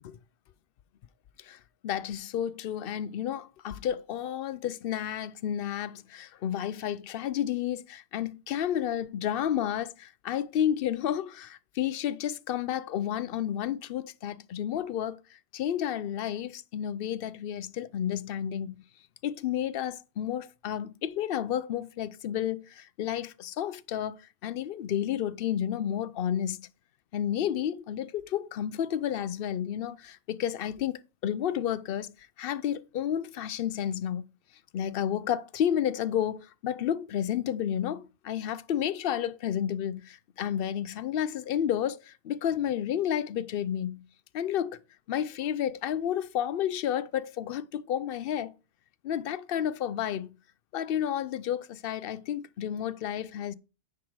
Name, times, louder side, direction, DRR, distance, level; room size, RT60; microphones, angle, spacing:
voice 1, 1.4-18.8 19.2-26.6 27.1-32.1 32.4-34.2 34.7-44.0 44.3-44.8 45.1-48.5 49.0-50.3 50.7-53.5, left 10 dB, 65° left, 0.7 m, -31 dB
9.6 x 4.9 x 4.6 m
omnidirectional pair, 1.2 m